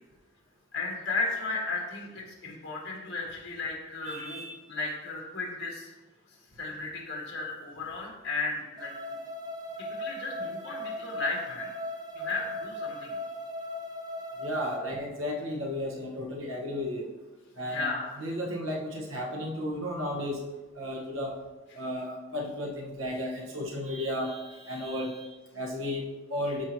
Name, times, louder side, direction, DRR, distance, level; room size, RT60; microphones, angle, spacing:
voice 1, 0.7-5.9 6.6-8.9 10.0-11.7 12.1-13.2 17.7-18.1, left 3 dB, 60° left, -2 dB, 2.0 m, -34 dB
voice 2, 4.0-4.6 14.4-17.1 17.6-17.9 18.2-20.4 20.7-21.3 21.7-26.7, left 1 dB, 90° right, 0 dB, 1.4 m, -34 dB
sound 1, 8.8-14.8, left 1 dB, 20° right, 0.7 m, -38 dB
13.0 x 4.5 x 3.0 m, 1.2 s
head